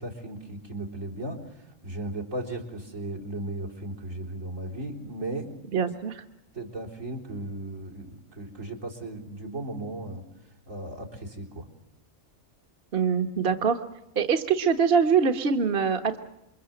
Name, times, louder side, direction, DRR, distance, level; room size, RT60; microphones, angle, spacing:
voice 1, 0.0-5.5 6.5-10.2 10.7-11.7, right 1 dB, 85° right, -1 dB, 4.5 m, -36 dB
voice 2, 5.7-6.2 12.9-13.8 14.1-16.2, right 6 dB, 50° right, 6 dB, 1.4 m, -23 dB
28.0 x 23.0 x 7.8 m, 0.83 s
omnidirectional pair, 1.3 m